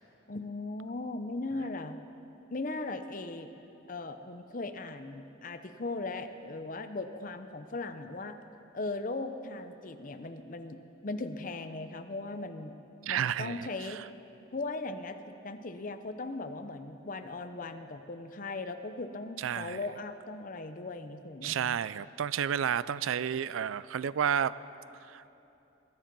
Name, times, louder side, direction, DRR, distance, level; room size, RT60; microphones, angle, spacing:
voice 1, 0.3-2.0 2.5-3.5 3.9-8.4 8.7-12.7 13.1-14.0 14.5-21.8, left 2 dB, 40° left, 8 dB, 0.7 m, -38 dB
voice 2, 13.0-14.0 19.4-19.8 21.4-24.5 25.1-25.2, right 8 dB, 85° right, 18 dB, 0.4 m, -31 dB
21.0 x 10.5 x 5.4 m, 2.9 s
head